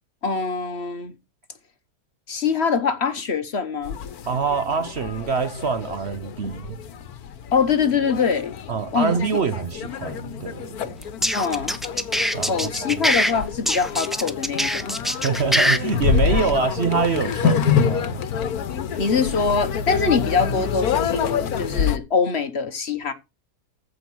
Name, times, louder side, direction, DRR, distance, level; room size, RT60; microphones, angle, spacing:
voice 1, 0.2-1.1 2.3-4.0 7.5-8.5 8.9-9.1 11.3-11.7 12.5-14.9 19.0-23.1, left 5 dB, 45° left, 1.3 m, -23 dB
sound 1, 3.8-22.0, left 7 dB, 75° left, 1.4 m, -27 dB
voice 2, 4.2-6.8 8.7-11.0 12.3-13.0 15.1-18.2 18.9-19.0, right 5 dB, 50° right, 0.9 m, -25 dB
sound 2, 11.0-13.3 13.6-15.8, equal, ahead, 0.6 m, -22 dB
14.5 x 5.0 x 6.2 m
omnidirectional pair, 1.6 m